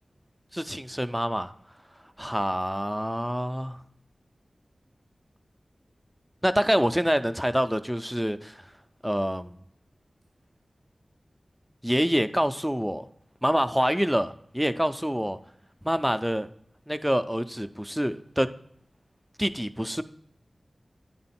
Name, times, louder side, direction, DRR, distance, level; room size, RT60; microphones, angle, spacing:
voice 1, 0.5-1.5 2.2-3.8 6.4-8.6 9.0-9.6 11.8-13.0 13.4-15.4 15.8-16.5 16.9-18.5 19.4-20.0, equal, 5° right, 11 dB, 0.4 m, -26 dB
9.7 x 3.8 x 4.2 m, 0.65 s
wide cardioid pair, 65°, 0 cm